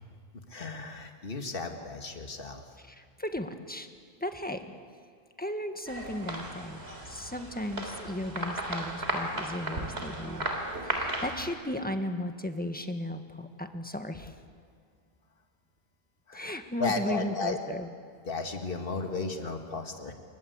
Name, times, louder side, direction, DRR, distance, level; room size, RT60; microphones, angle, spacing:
voice 1, 0.3-2.6 10.9-11.2 16.3-17.6 18.3-20.1, left 3 dB, 60° left, 5 dB, 2.1 m, -35 dB
voice 2, 2.9-3.9 4.2-4.7 5.4-10.5 10.8-14.4 16.3-17.9, left 1 dB, 10° left, 7 dB, 1.6 m, -35 dB
sound 1, 5.9-11.5, right 1 dB, 85° right, 4.0 m, -35 dB
28.5 x 24.0 x 8.1 m, 2.2 s
omnidirectional pair, 1.0 m